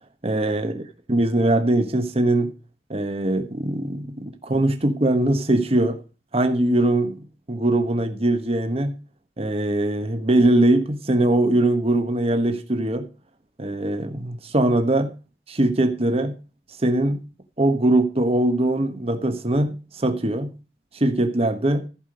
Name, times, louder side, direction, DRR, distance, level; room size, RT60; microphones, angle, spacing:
voice 1, 0.2-0.8 1.1-2.5 2.9-6.0 6.3-7.2 7.5-8.9 9.4-13.1 13.6-15.1 15.5-16.3 16.8-17.2 17.6-20.5 20.9-21.9, right 1 dB, 35° right, 1.2 m, -21 dB
15.0 x 5.2 x 5.0 m
head